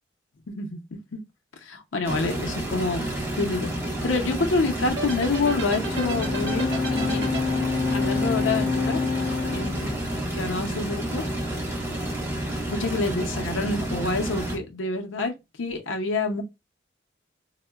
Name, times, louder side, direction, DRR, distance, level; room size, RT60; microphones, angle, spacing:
voice 1, 0.5-0.8 1.1-1.2 1.6-3.1 3.4-7.3 7.6-9.0 9.5-10.0 10.3-11.2 12.7-16.4, left 3 dB, 85° left, 0.5 m, -27 dB
sound 1, 2.0-14.6, right 1 dB, 15° right, 0.8 m, -30 dB
sound 2, 5.0-9.2, right 3 dB, 75° right, 1.1 m, -34 dB
Bowed string instrument, 5.4-10.8, left 4 dB, 10° left, 0.4 m, -28 dB
3.6 x 2.0 x 2.2 m
head